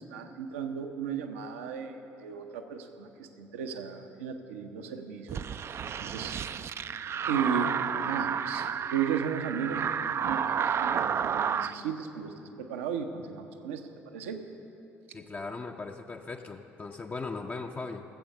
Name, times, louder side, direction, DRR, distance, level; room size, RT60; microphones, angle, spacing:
voice 1, 0.0-5.4 6.0-6.3 7.3-7.8 8.0-9.9 10.2-14.4, right 7 dB, 70° right, 6 dB, 0.8 m, -35 dB
sound 1, 5.3-11.7, right 7 dB, 35° right, 0.4 m, -31 dB
voice 2, 15.1-18.0, left 3 dB, 25° left, 3 dB, 0.6 m, -38 dB
14.0 x 7.8 x 6.7 m, 2.9 s
figure-of-eight pair, 50°, 7 cm